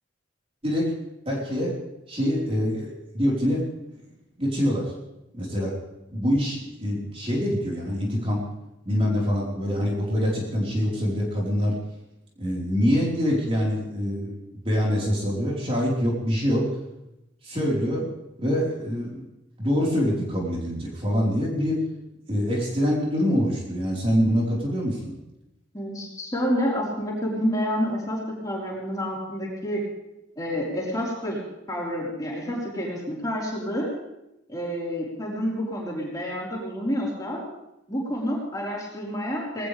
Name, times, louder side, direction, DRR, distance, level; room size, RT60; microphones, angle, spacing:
voice 1, 1.3-1.8 2.1-3.6 4.4-4.9 5.3-5.7 6.1-8.4 8.8-11.8 12.4-14.3 14.6-16.7 17.4-18.1 18.4-19.2 19.6-21.8 22.3-25.1, equal, 30° right, -4 dB, 4.5 m, -25 dB
voice 2, 25.7-29.8 30.4-31.4 31.7-33.9 34.5-37.5 37.9-39.7, equal, 20° left, -5 dB, 4.6 m, -29 dB
20.5 x 18.5 x 3.5 m, 0.90 s
head